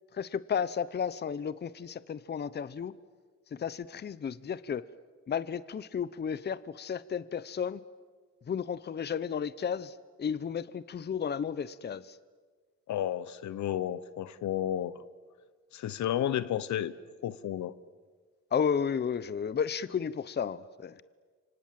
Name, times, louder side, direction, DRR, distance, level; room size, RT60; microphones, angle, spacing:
voice 1, 0.1-2.9 3.5-4.8 5.3-7.8 8.5-12.2 18.5-21.0, left 7 dB, 35° left, 17 dB, 0.8 m, -33 dB
voice 2, 12.9-15.0 15.7-16.9 17.2-17.7, left 11 dB, 70° left, 17 dB, 1.1 m, -32 dB
29.0 x 25.5 x 7.6 m, 1.5 s
cardioid pair, 90°, 30 cm